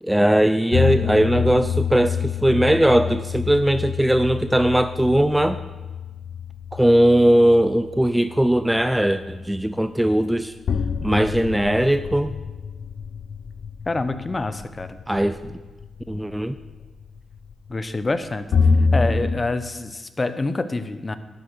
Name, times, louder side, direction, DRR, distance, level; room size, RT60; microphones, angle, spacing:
voice 1, 0.0-5.6 6.7-10.5 11.0-12.3 15.1-15.4 16.1-16.5, right 1 dB, 5° right, 11 dB, 0.4 m, -19 dB
sound 1, 0.7-19.4, left 5 dB, 65° left, 0.6 m, -27 dB
voice 2, 13.9-15.0 17.7-18.5 18.9-21.2, left 2 dB, 25° left, 11 dB, 0.7 m, -26 dB
11.5 x 6.4 x 6.2 m, 1.2 s
cardioid pair, 85°, 0 cm